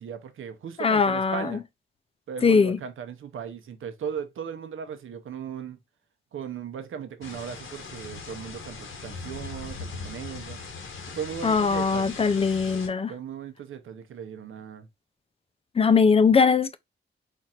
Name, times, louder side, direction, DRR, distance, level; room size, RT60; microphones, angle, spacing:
voice 1, 0.0-1.6 2.3-5.8 6.3-10.6 11.1-12.1 13.1-14.9, right 8 dB, 80° right, 0.8 m, -37 dB
voice 2, 0.8-1.6 2.4-2.8 11.4-13.1 15.8-16.8, left 5 dB, 30° left, 0.5 m, -21 dB
sound 1, 7.2-12.9, left 4 dB, 80° left, 1.2 m, -39 dB
4.4 x 2.5 x 4.3 m
wide cardioid pair, 105°, 20 cm